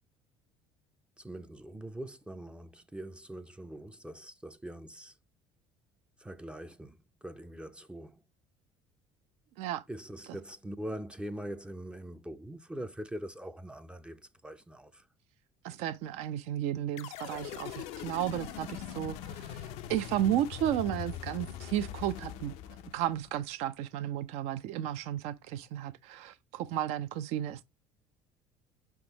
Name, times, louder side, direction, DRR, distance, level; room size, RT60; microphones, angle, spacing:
voice 1, 1.2-5.2 6.2-8.2 9.9-15.1, right 1 dB, 10° right, 0.4 m, -43 dB
voice 2, 15.6-22.5 22.9-27.6, right 12 dB, 70° right, 0.5 m, -33 dB
sound 1, 17.0-23.4, left 10 dB, 70° left, 0.4 m, -42 dB
5.3 x 3.6 x 2.8 m
supercardioid pair, 85°, 12 cm